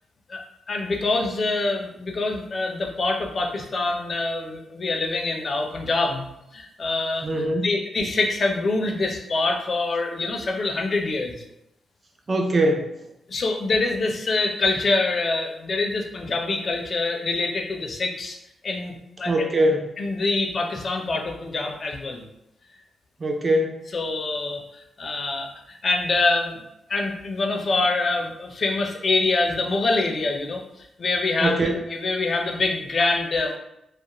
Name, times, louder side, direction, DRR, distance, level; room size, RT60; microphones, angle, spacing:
voice 1, 0.7-6.2 6.5-11.4 13.3-18.4 18.6-19.5 20.0-22.3 23.9-26.6 26.9-33.6, left 3 dB, 50° left, 2 dB, 0.4 m, -25 dB
voice 2, 7.2-7.7 12.3-12.9 19.3-19.9 23.2-23.8 31.4-31.7, right 1 dB, 35° right, 2 dB, 0.4 m, -22 dB
2.3 x 2.0 x 2.9 m, 0.83 s
cardioid pair, 75°, 0 cm